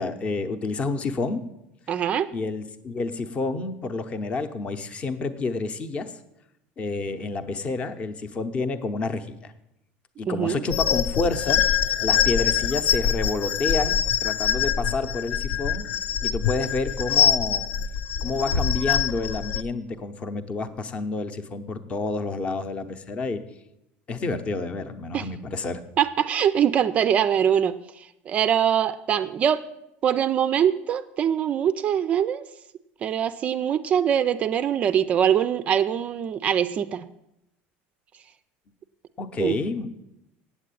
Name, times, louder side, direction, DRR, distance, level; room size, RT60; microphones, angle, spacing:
voice 1, 0.0-1.4 2.3-6.1 6.8-9.5 10.2-11.6 12.0-15.8 16.2-17.7 18.2-23.4 24.1-25.8 39.2-39.9, left 3 dB, 25° left, 9 dB, 0.7 m, -29 dB
voice 2, 1.9-2.3 10.3-10.6 25.1-25.3 26.0-27.7 28.3-29.6 30.0-32.4 33.0-37.0 39.4-39.6, right 9 dB, 30° right, 12 dB, 0.4 m, -23 dB
sound 1, 10.7-19.6, left 8 dB, 55° left, 0.4 m, -24 dB
sound 2, 18.5-20.1, left 3 dB, 85° left, 1.5 m, -31 dB
8.5 x 8.2 x 8.5 m, 0.85 s
cardioid pair, 170°, 5 cm